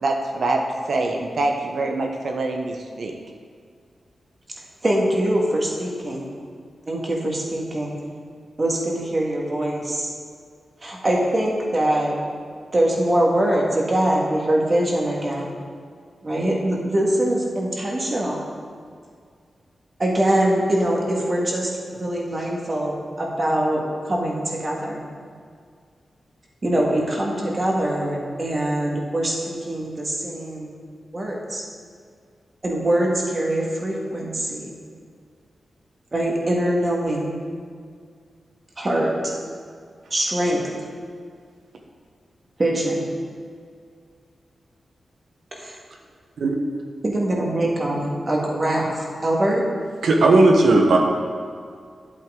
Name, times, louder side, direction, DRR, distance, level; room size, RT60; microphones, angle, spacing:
voice 1, 0.0-3.2, right 2 dB, 65° right, 2 dB, 0.8 m, -25 dB
voice 2, 4.8-6.2 6.9-8.0 8.6-10.1 10.8-12.2 12.7-15.5 16.2-18.4 20.0-23.8 24.1-25.1 26.6-30.8 31.1-31.6 32.6-34.8 36.1-37.3 38.8-39.3 40.1-40.6 42.6-43.0 45.5-45.8 47.0-49.6, right 1 dB, 30° right, -2 dB, 1.8 m, -23 dB
voice 3, 50.0-51.0, right 2 dB, 90° right, 2 dB, 1.2 m, -15 dB
11.0 x 8.4 x 3.8 m, 2.1 s
wide cardioid pair, 110°, 0 cm